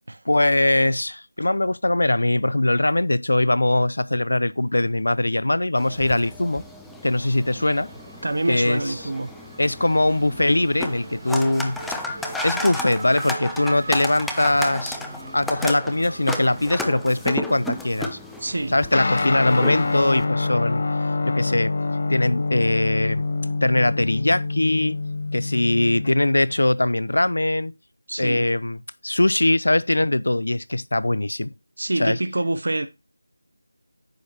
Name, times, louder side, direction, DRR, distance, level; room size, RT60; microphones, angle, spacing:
voice 1, 0.3-6.6 7.0-7.9 8.5-8.8 9.6-11.8 12.4-15.0 15.3-18.2 18.7-20.8 21.2-21.7 22.1-23.2 23.6-25.0 25.3-27.7 28.2-31.5 32.0-32.2, left 1 dB, 80° left, 0.5 m, -21 dB
Race car auto racing / Accelerating revving vroom, 4.7-5.7 6.0-19.7, right 2 dB, 45° right, 1.7 m, -41 dB
sound 1, 5.8-20.2, left 2 dB, ahead, 0.3 m, -34 dB
voice 2, 8.2-9.3 18.4-18.7 28.1-28.5 31.8-32.9, right 2 dB, 65° right, 0.8 m, -26 dB
Guitar, 18.9-26.6, left 3 dB, 40° left, 1.0 m, -26 dB
9.4 x 6.4 x 2.9 m
figure-of-eight pair, 175°, 0 cm